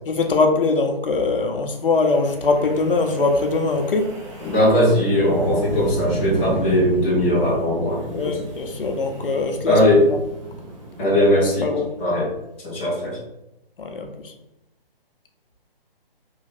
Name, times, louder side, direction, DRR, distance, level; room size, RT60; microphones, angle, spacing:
voice 1, 0.1-4.2 8.1-9.8 11.6-11.9 13.8-14.3, left 3 dB, 65° left, 4 dB, 0.7 m, -22 dB
Wind, 1.9-12.2, right 1 dB, 30° right, 0.8 m, -32 dB
voice 2, 4.4-8.4 9.7-10.0 11.0-11.7 12.0-12.3 12.6-13.2, left 1 dB, 15° left, -8 dB, 0.5 m, -19 dB
3.1 x 2.4 x 4.0 m, 0.91 s
figure-of-eight pair, 145°, 30 cm